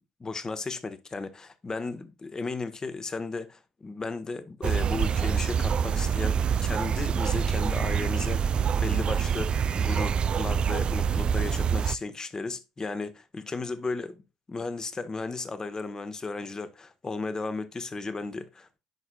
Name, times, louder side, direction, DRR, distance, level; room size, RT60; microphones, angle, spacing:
voice 1, 0.2-14.2 14.5-18.8, left 3 dB, 25° left, 1.0 m, -35 dB
sound 1, 4.6-12.0, right 7 dB, 40° right, 0.3 m, -26 dB
11.0 x 4.8 x 2.2 m
hypercardioid pair, 60°, 2 cm